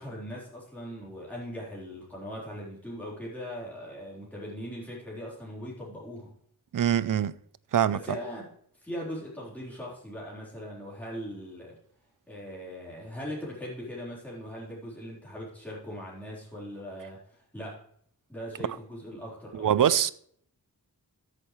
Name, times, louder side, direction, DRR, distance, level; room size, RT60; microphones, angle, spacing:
voice 1, 0.0-6.3 7.9-8.5 8.8-11.8 12.3-17.8 18.3-19.9, equal, 5° left, 3.9 m, -40 dB
voice 2, 6.7-7.3 7.7-8.0 19.5-20.1, right 9 dB, 60° right, 0.5 m, -23 dB
13.5 x 8.5 x 3.1 m
wide cardioid pair, 80°, 37 cm